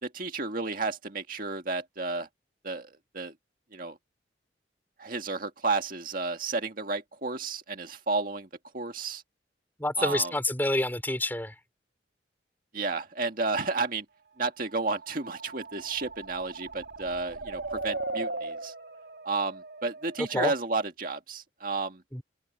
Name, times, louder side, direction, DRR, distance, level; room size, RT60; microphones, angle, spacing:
voice 1, 0.0-2.3 2.6-2.9 3.1-3.3 3.7-4.0 5.0-8.5 8.7-9.2 10.0-10.3 12.7-14.0 14.4-18.7 19.3-22.0, right 3 dB, 50° right, 1.9 m, -32 dB
voice 2, 9.8-11.5 20.3-20.5 22.1-22.2, left 1 dB, 10° left, 4.9 m, -28 dB
sound 1, 14.8-20.6, right 2 dB, 75° right, 3.0 m, -38 dB
head